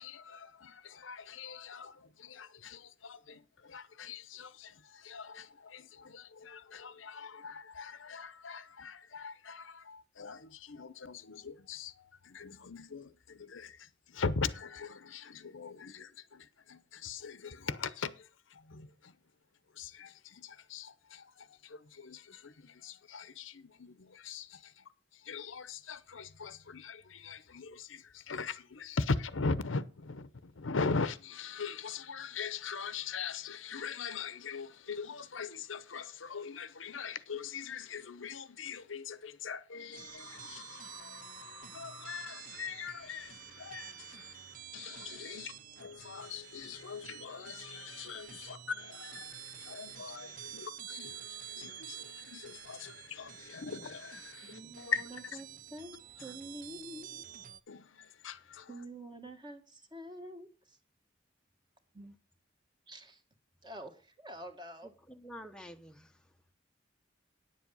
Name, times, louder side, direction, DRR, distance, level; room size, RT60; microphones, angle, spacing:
voice 1, 0.0-19.2 19.7-55.4 56.2-56.4 57.7-58.8, left 5 dB, 90° left, 0.8 m, -41 dB
sound 1, 39.9-57.6, right 10 dB, 45° right, 0.6 m, -49 dB
voice 2, 54.5-54.9 55.7-57.2 58.7-60.5 62.0-62.1 62.9-63.2 63.6-63.9 64.2-64.9, right 1 dB, 25° right, 1.6 m, -47 dB
voice 3, 64.8-66.3, equal, 5° left, 0.8 m, -50 dB
10.0 x 7.6 x 5.4 m
head